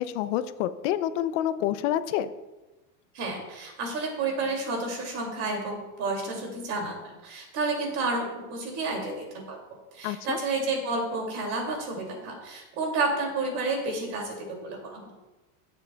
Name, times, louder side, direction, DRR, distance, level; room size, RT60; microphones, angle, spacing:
voice 1, 0.0-2.3 10.0-10.4, left 12 dB, 75° left, 13 dB, 0.6 m, -28 dB
voice 2, 3.1-9.6 9.9-15.2, right 3 dB, 45° right, 0 dB, 2.5 m, -31 dB
14.5 x 7.4 x 2.3 m, 1.1 s
cardioid pair, 180°, 37 cm